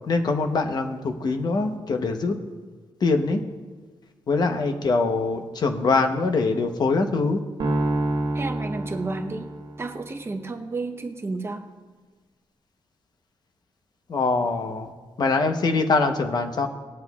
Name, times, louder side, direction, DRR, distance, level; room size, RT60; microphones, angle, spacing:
voice 1, 0.1-2.4 3.0-3.4 4.3-7.4 14.1-14.9 15.2-16.7, left 3 dB, 50° left, 6 dB, 0.9 m, -23 dB
sound 1, 7.6-10.0, right 1 dB, 80° right, 1.4 m, -27 dB
voice 2, 8.3-9.5 9.8-11.6, right 3 dB, 30° right, 6 dB, 0.8 m, -31 dB
20.5 x 7.9 x 2.4 m, 1.4 s
wide cardioid pair, 135°, 9 cm